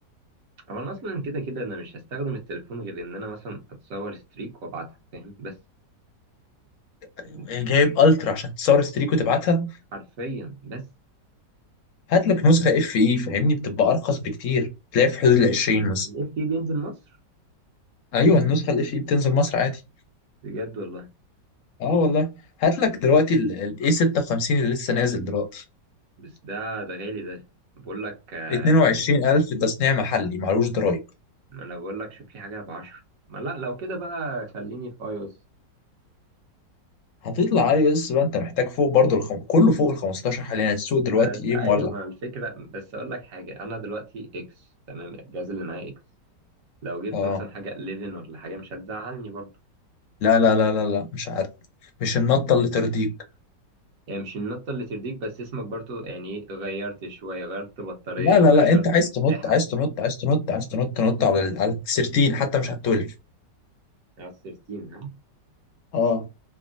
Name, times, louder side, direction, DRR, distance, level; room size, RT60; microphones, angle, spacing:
voice 1, 0.7-5.6 7.3-7.5 9.9-10.9 16.0-17.2 20.4-21.1 22.8-23.0 26.2-27.4 27.7-28.9 31.5-33.0 33.3-35.3 41.1-45.9 46.8-49.5 54.1-59.6 64.2-65.1, right 2 dB, 55° right, 1.2 m, -34 dB
voice 2, 7.2-9.7 12.1-16.1 18.1-19.8 21.8-22.3 22.6-25.6 28.5-31.0 37.2-41.9 47.1-47.4 50.2-51.5 52.0-53.1 58.2-63.1 65.9-66.3, left 4 dB, 65° left, 0.8 m, -21 dB
3.4 x 2.1 x 2.4 m
omnidirectional pair, 1.9 m